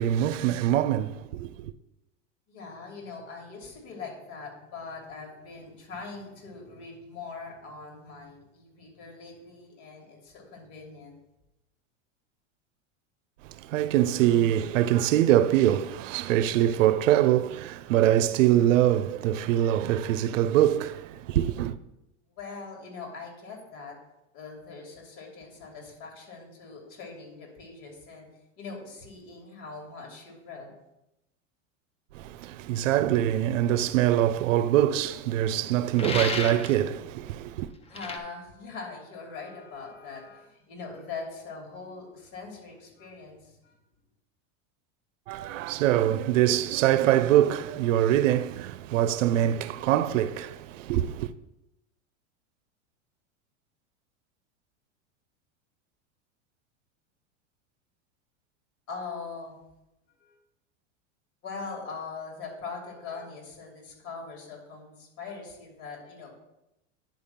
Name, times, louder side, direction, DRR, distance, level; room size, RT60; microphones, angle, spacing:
voice 1, 0.0-1.7 13.4-21.8 32.1-37.7 45.3-51.3, right 12 dB, 85° right, 0.6 m, -24 dB
voice 2, 2.5-11.2 22.3-24.0 24.3-28.3 28.6-30.7 37.9-43.8 58.9-59.6 60.2-60.3 61.4-66.3, left 4 dB, 55° left, 3.0 m, -42 dB
sound 1, 36.0-36.8 37.9-38.2, left 3 dB, 15° left, 0.8 m, -32 dB
10.5 x 3.5 x 5.7 m
supercardioid pair, 120°, 37 cm